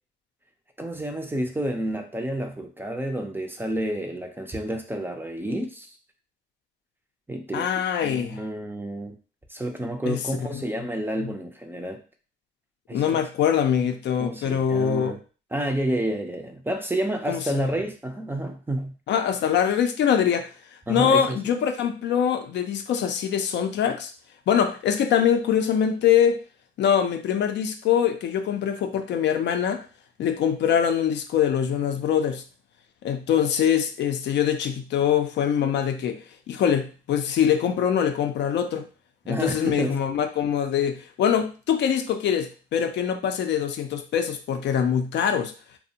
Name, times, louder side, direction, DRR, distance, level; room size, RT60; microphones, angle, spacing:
voice 1, 0.8-5.9 7.3-7.7 8.0-9.2 9.5-12.0 12.9-13.2 14.2-15.2 15.5-19.0 20.9-21.4 39.2-40.0, right 1 dB, 10° right, 0.4 m, -30 dB
voice 2, 7.5-8.4 10.1-10.6 12.9-15.2 17.3-17.7 19.1-20.5 20.9-24.1 24.5-26.4 26.8-29.8 30.2-32.4 33.0-38.8 39.3-45.5, left 8 dB, 65° left, 0.4 m, -23 dB
2.5 x 2.0 x 2.7 m
cardioid pair, 90°, 20 cm